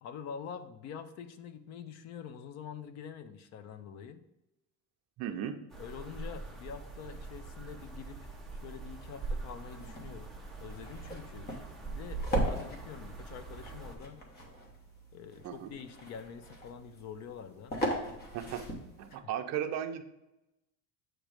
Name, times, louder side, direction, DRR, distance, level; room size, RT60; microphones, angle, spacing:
voice 1, 0.0-4.2 5.8-10.3 10.6-11.5 11.8-14.2 15.1-17.8 19.1-19.3, left 7 dB, 50° left, 10 dB, 0.5 m, -46 dB
voice 2, 5.2-5.6 15.4-15.7 18.3-18.6 19.0-20.0, right 9 dB, 50° right, 7 dB, 0.6 m, -35 dB
sound 1, 5.7-14.0, right 3 dB, ahead, 0.5 m, -43 dB
sound 2, 9.6-19.2, right 1 dB, 25° left, 1.1 m, -39 dB
7.8 x 3.1 x 4.9 m, 0.94 s
cardioid pair, 180°, 35 cm